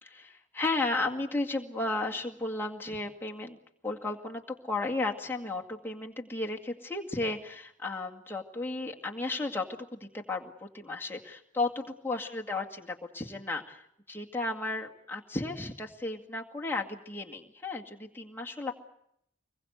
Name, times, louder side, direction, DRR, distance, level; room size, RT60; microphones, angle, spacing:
voice 1, 0.0-3.6 3.8-18.7, left 2 dB, 10° left, 0 dB, 2.0 m, -34 dB
25.5 x 21.5 x 8.1 m, 0.75 s
head